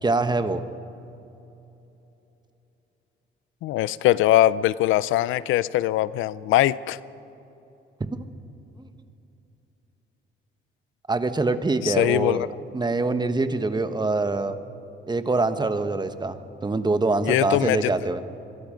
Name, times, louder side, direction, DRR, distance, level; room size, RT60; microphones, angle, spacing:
voice 1, 0.0-0.6 8.0-8.2 8.8-8.9 11.1-12.5 12.7-14.5 15.1-16.4 16.6-18.2, right 3 dB, 20° right, 9 dB, 1.3 m, -24 dB
voice 2, 3.6-7.0 11.8-12.5 17.2-17.9, left 14 dB, 90° left, 18 dB, 0.5 m, -21 dB
25.0 x 22.0 x 5.2 m, 2.9 s
cardioid pair, 90°, 20 cm